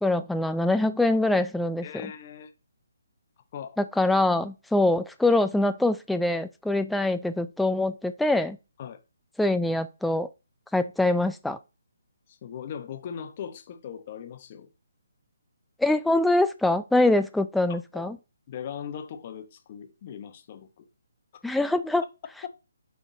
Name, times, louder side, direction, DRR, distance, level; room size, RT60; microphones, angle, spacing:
voice 1, 0.0-1.9 3.8-8.6 9.4-10.3 10.7-11.6 15.8-18.2 21.4-22.0, left 2 dB, ahead, 0.4 m, -24 dB
voice 2, 1.8-2.5 3.5-3.8 8.8-9.0 12.3-14.7 17.7-18.1 18.5-20.9, left 8 dB, 35° left, 0.9 m, -39 dB
9.7 x 3.6 x 2.7 m
figure-of-eight pair, 140°, 0 cm